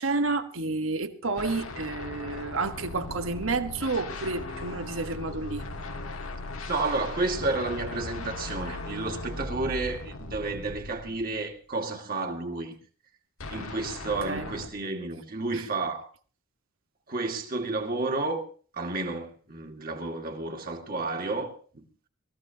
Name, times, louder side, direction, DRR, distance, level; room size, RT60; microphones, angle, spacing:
voice 1, 0.0-5.6 14.2-14.5 15.5-15.6, right 3 dB, 70° right, 1.3 m, -30 dB
sound 1, 1.4-11.6 13.4-14.7, left 2 dB, 75° left, 1.6 m, -38 dB
voice 2, 6.7-12.8 13.5-16.0 17.1-18.4 18.7-21.8, right 3 dB, 40° right, 2.2 m, -31 dB
22.5 x 14.5 x 2.8 m
head